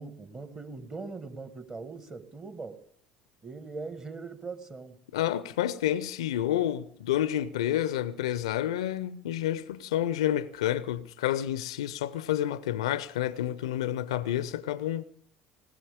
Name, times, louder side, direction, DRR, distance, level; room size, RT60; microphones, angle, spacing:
voice 1, 0.0-2.8 3.4-5.0, right 4 dB, 30° right, 1.8 m, -41 dB
voice 2, 5.1-15.0, left 11 dB, 70° left, 0.6 m, -29 dB
19.5 x 19.5 x 3.6 m
figure-of-eight pair, 60°, 3 cm